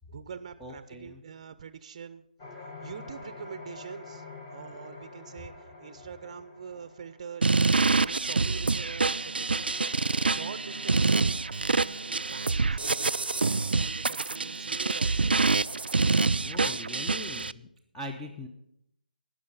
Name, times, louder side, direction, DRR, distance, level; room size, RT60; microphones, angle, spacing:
voice 1, 0.1-2.3 2.8-4.2 4.5-5.5 5.8-9.8 10.1-11.4 11.6-12.8 13.4-15.3, right 7 dB, 40° right, 13 dB, 0.7 m, -44 dB
voice 2, 0.6-1.2 16.4-17.7 17.9-18.5, left 1 dB, 5° left, -1 dB, 0.7 m, -41 dB
sound 1, 2.4-13.8, left 3 dB, 20° left, 1.8 m, -48 dB
sound 2, 7.4-17.5, right 3 dB, 90° right, 0.3 m, -26 dB
18.5 x 6.3 x 5.4 m, 0.76 s
figure-of-eight pair, 160°, 5 cm